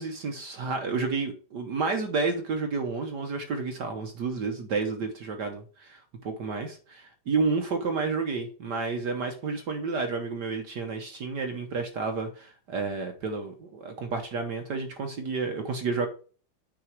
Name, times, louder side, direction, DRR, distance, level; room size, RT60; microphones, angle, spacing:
voice 1, 0.0-16.1, right 4 dB, 55° right, 5 dB, 1.4 m, -30 dB
9.0 x 4.8 x 4.5 m, 0.39 s
omnidirectional pair, 2.4 m